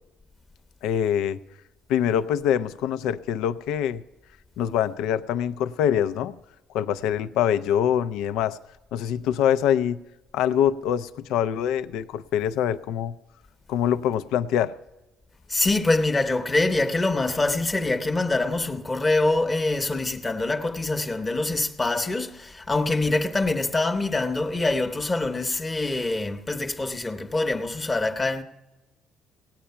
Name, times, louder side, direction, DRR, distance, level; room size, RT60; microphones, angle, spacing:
voice 1, 0.8-1.4 1.9-4.0 4.6-6.3 6.7-8.6 8.9-10.0 10.3-13.1 13.7-14.7, left 9 dB, 80° left, 0.5 m, -24 dB
voice 2, 15.5-28.4, left 2 dB, 20° left, 0.9 m, -25 dB
17.5 x 8.8 x 5.6 m
cardioid pair, 100°, 0 cm